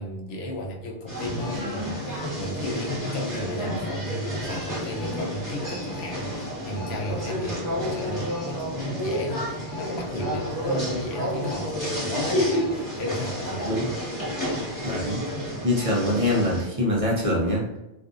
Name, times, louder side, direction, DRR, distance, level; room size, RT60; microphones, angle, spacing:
voice 1, 0.0-13.8 14.8-14.9, left 1 dB, 90° left, 0 dB, 0.9 m, -34 dB
sound 1, 1.1-16.7, equal, 20° left, 1.1 m, -30 dB
voice 2, 14.8-15.2 15.6-17.8, left 1 dB, 45° right, -4 dB, 0.5 m, -24 dB
2.5 x 2.5 x 2.4 m, 0.94 s
omnidirectional pair, 1.0 m